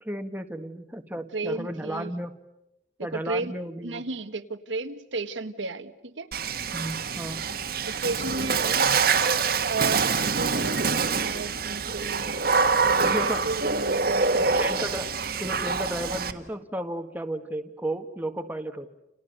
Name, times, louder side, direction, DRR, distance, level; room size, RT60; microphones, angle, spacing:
voice 1, 0.0-2.3 3.0-4.0 6.7-7.5 13.0-13.4 14.3-15.1 15.4-18.9, right 1 dB, 10° right, 5 dB, 1.6 m, -33 dB
voice 2, 1.3-2.1 3.1-3.5 3.8-6.3 7.9-8.9 9.7-12.5 12.8-14.7, right 3 dB, 85° right, 8 dB, 1.6 m, -33 dB
Water / Splash splatter, 6.3-16.3, right 5 dB, 55° right, 1.6 m, -25 dB
30.0 x 29.0 x 6.7 m, 0.86 s
head